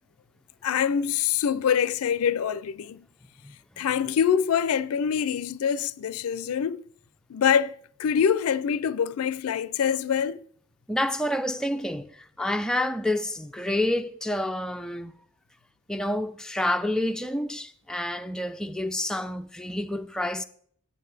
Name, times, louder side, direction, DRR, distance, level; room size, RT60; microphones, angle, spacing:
voice 1, 0.6-3.0 3.8-6.8 7.3-7.7 8.0-10.4, left 8 dB, 90° left, 0.4 m, -25 dB
voice 2, 10.9-15.2 15.9-20.4, left 1 dB, 5° left, 0.3 m, -28 dB
10.5 x 9.4 x 3.3 m
head